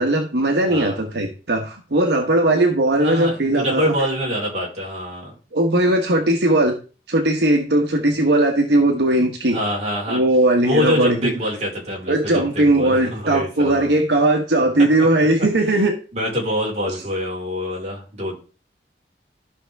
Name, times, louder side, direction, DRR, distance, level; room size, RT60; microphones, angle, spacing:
voice 1, 0.0-3.9 5.5-6.8 7.1-9.6 10.1-11.3 12.1-15.9, right 1 dB, 80° right, 3 dB, 1.3 m, -18 dB
voice 2, 0.7-1.0 3.0-5.3 9.5-10.2 10.6-13.9 15.7-15.8 16.1-18.4, equal, 40° right, -3 dB, 4.1 m, -25 dB
13.0 x 5.7 x 3.5 m, 0.35 s
head